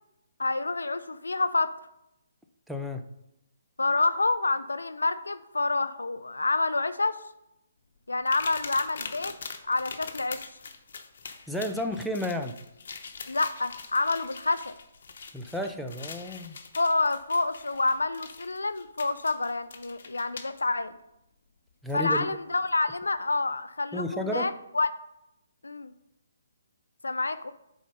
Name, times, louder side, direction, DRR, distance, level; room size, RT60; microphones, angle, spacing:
voice 1, 0.4-1.7 3.8-7.2 8.1-9.3 9.6-10.5 13.3-14.8 16.8-20.9 21.9-24.9 25.6-25.9 27.0-27.5, left 3 dB, 85° left, 12 dB, 0.5 m, -28 dB
voice 2, 2.7-3.0 11.5-12.5 15.3-16.6 21.8-22.3 23.9-24.5, left 1 dB, ahead, 4 dB, 0.5 m, -32 dB
sound 1, 8.3-20.6 21.9-22.0 22.6-22.7, left 5 dB, 60° left, 0.9 m, -43 dB
7.1 x 4.3 x 5.4 m, 0.84 s
hypercardioid pair, 145°, 0 cm